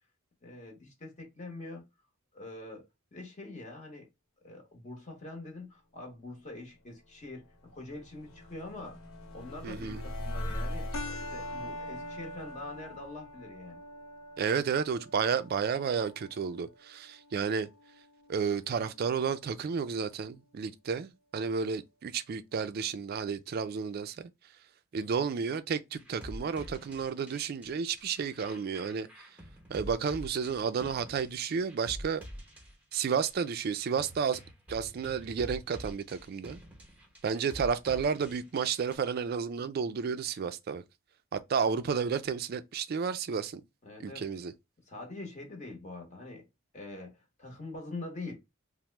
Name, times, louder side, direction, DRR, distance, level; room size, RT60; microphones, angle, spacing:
voice 1, 0.4-1.8 2.3-4.1 4.4-9.0 9.3-13.8 43.8-44.2 44.9-46.5 46.7-48.4, left 2 dB, 35° left, 0.9 m, -44 dB
sound 1, 7.0-14.1, left 1 dB, 90° left, 0.9 m, -41 dB
voice 2, 9.6-10.0 14.4-17.7 18.3-24.3 24.9-29.1 29.7-32.2 32.9-34.4 34.7-36.6 37.2-40.8 41.3-43.6 44.0-44.5, right 6 dB, 45° right, 0.3 m, -32 dB
sound 2, 10.9-19.9, left 1 dB, 70° left, 0.5 m, -46 dB
sound 3, 26.0-39.0, equal, 5° right, 0.8 m, -47 dB
2.9 x 2.0 x 3.2 m
head